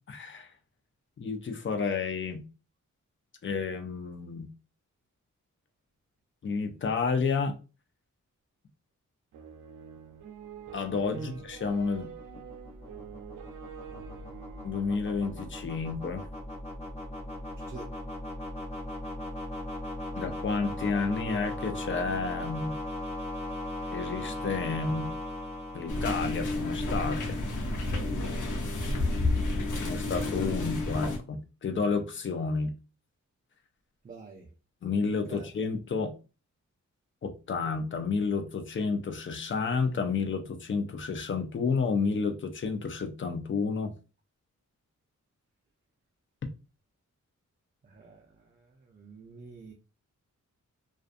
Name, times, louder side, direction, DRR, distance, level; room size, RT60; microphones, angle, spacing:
voice 1, 0.1-0.5 1.2-2.4 3.4-4.5 6.4-7.5 10.7-12.1 14.6-16.3 20.1-22.7 23.9-25.1 25.7-27.4 29.9-32.7 34.8-36.1 37.2-43.9, left 4 dB, 40° left, 0.5 m, -30 dB
sound 1, 9.3-16.3, right 8 dB, 85° right, 0.5 m, -47 dB
sound 2, 10.6-26.8, left 1 dB, 20° left, 1.1 m, -38 dB
sound 3, 25.9-31.2, left 2 dB, 75° left, 0.7 m, -30 dB
voice 2, 34.0-34.5 35.3-35.5 47.9-48.2 48.9-49.7, right 3 dB, 30° right, 0.5 m, -44 dB
2.5 x 2.3 x 2.4 m
wide cardioid pair, 95°, 31 cm